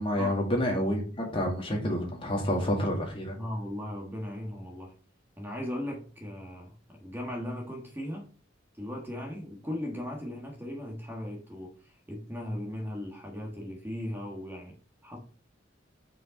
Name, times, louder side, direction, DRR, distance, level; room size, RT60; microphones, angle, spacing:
voice 1, 0.0-3.4, equal, 30° left, 0 dB, 2.2 m, -29 dB
voice 2, 3.3-4.9 5.4-8.3 8.8-14.7 15.0-15.2, left 1 dB, 10° right, 1 dB, 1.4 m, -37 dB
6.3 x 5.4 x 5.0 m, 0.39 s
head